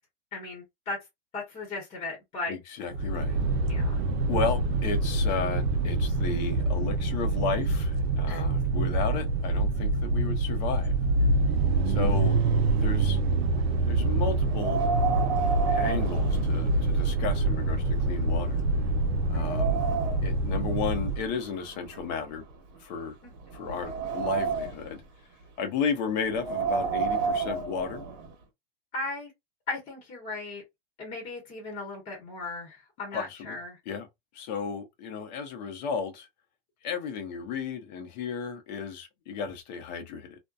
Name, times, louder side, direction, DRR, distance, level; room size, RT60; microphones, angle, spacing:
voice 1, 0.3-1.0 1.3-2.5 3.7-4.0 8.2-8.4 19.3-19.6 23.2-23.3 28.9-29.3 29.7-30.6 31.0-33.8, left 3 dB, 20° left, 0.9 m, -37 dB
voice 2, 2.5-3.4 4.3-11.0 11.9-12.4 12.8-13.2 13.9-14.8 15.6-18.6 19.3-19.8 20.2-22.4 22.8-23.2 23.5-25.0 25.6-28.0 33.1-33.6 33.9-34.1 34.3-36.3 36.8-40.4, left 5 dB, 45° left, 0.7 m, -33 dB
sound 1, 2.9-21.3, right 2 dB, 85° right, 0.6 m, -26 dB
Wind, 14.4-17.1 17.4-17.5 18.2-18.3 18.8-20.4 21.2-22.8 23.3-25.0 26.2-28.3, right 5 dB, 45° right, 1.2 m, -31 dB
2.6 x 2.1 x 2.3 m
supercardioid pair, 160°, 30 cm